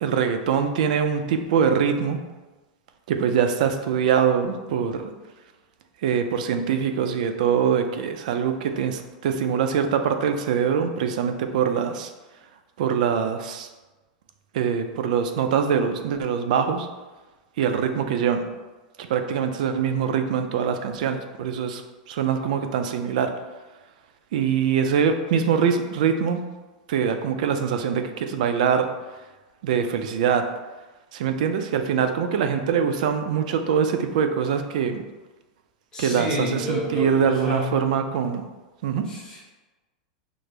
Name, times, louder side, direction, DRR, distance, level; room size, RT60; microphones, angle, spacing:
voice 1, 0.0-2.2 3.1-5.1 6.0-12.1 12.8-13.7 14.5-16.9 17.6-18.5 19.0-21.8 22.1-23.3 24.3-26.4 26.9-28.9 29.6-30.5 31.1-35.0 36.0-38.4 38.8-39.1, right 7 dB, 70° right, 7 dB, 0.4 m, -23 dB
voice 2, 35.9-37.7 39.1-39.4, left 1 dB, 15° left, -5 dB, 1.1 m, -29 dB
5.0 x 2.0 x 3.2 m, 1.2 s
supercardioid pair, 135°, 4 cm